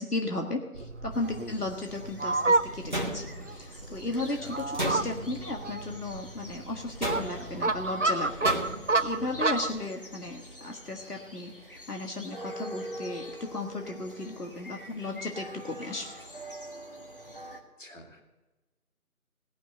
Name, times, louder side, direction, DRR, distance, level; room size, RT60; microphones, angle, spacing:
voice 1, 0.0-8.6 9.0-16.1, left 2 dB, 80° left, 2 dB, 1.8 m, -35 dB
Fowl, 0.7-9.8, right 3 dB, 55° right, 0.6 m, -30 dB
sound 1, 1.1-17.6, equal, 35° left, 1.5 m, -45 dB
voice 2, 1.4-1.7 4.3-4.5 17.8-18.2, equal, 55° left, 2 dB, 2.4 m, -45 dB
sound 2, 2.9-3.6 4.7-5.4 7.0-7.6 8.4-9.0, right 1 dB, 30° right, 1.2 m, -33 dB
18.0 x 6.2 x 7.7 m, 1.2 s
figure-of-eight pair, 170°, 45 cm